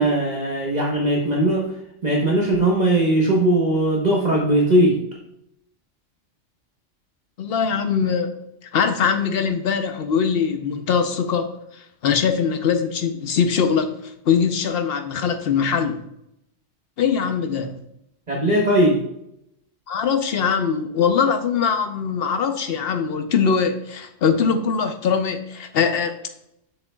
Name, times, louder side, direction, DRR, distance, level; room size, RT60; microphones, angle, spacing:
voice 1, 0.0-1.7 2.0-5.0 18.3-19.0, right 1 dB, 35° right, -3 dB, 1.2 m, -19 dB
voice 2, 7.4-8.3 8.7-11.5 12.0-16.0 17.0-17.8 19.9-26.1, left 6 dB, 55° left, 7 dB, 0.9 m, -22 dB
6.8 x 6.7 x 2.3 m, 0.78 s
omnidirectional pair, 1.3 m